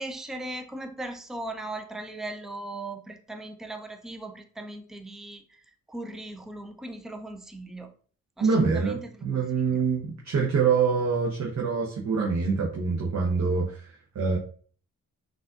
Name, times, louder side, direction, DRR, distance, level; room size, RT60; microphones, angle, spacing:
voice 1, 0.0-5.6 5.9-7.9 8.4-9.8, right 2 dB, ahead, 7 dB, 0.5 m, -38 dB
voice 2, 8.4-13.9 14.1-14.4, right 5 dB, 45° right, -1 dB, 0.8 m, -25 dB
3.8 x 2.4 x 2.4 m, 0.44 s
hypercardioid pair, 40°, 40 cm